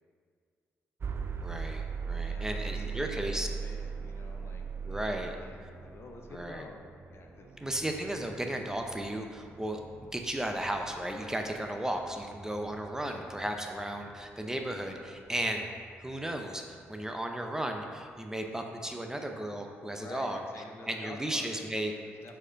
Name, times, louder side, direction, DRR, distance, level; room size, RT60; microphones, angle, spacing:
sound 1, 1.0-16.9, right 5 dB, 45° right, 0.4 m, -41 dB
voice 1, 1.4-3.5 4.9-5.3 6.3-6.6 7.6-9.8 10.1-15.7 16.0-20.4 20.9-21.9, right 1 dB, 10° right, 3 dB, 0.7 m, -35 dB
voice 2, 2.2-8.0 13.0-13.3 19.9-21.6 22.0-22.4, left 3 dB, 50° left, 3 dB, 0.7 m, -49 dB
4.9 x 4.4 x 5.1 m, 2.1 s
supercardioid pair, 50°, 5 cm